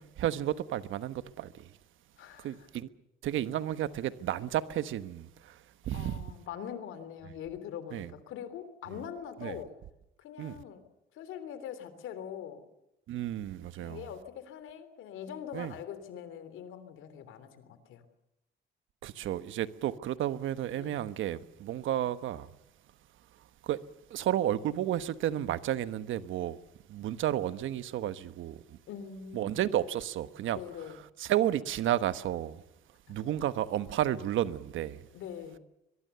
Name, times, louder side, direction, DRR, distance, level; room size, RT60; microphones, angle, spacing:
voice 1, 0.0-1.7 2.4-2.9 3.2-6.2 7.9-8.1 9.4-9.6 10.4-10.5 13.1-14.1 15.5-15.7 19.0-22.5 23.6-23.8 24.1-26.6 26.9-28.8 29.3-30.6 31.2-32.6 33.1-35.0, right 12 dB, 80° right, 1.3 m, -32 dB
voice 2, 2.2-2.7 5.9-9.7 10.2-10.8 11.1-12.7 13.8-18.0 20.7-21.0 28.9-29.5 30.5-31.0 33.1-33.3 35.1-35.6, left 9 dB, 85° left, 3.2 m, -43 dB
23.0 x 23.0 x 6.8 m
cardioid pair, 90°, 20 cm